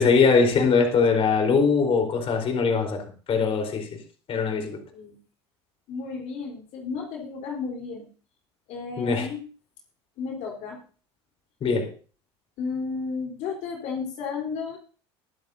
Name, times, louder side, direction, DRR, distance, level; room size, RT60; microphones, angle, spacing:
voice 1, 0.0-3.0 3.3-3.9 4.3-4.8 9.0-9.3 11.6-11.9, left 5 dB, 40° left, 3 dB, 4.2 m, -21 dB
voice 2, 5.9-8.1 8.7-9.4 10.2-10.8 12.6-14.8, left 5 dB, 60° left, 0 dB, 3.9 m, -33 dB
22.0 x 11.0 x 2.8 m, 0.39 s
hypercardioid pair, 85°, 14 cm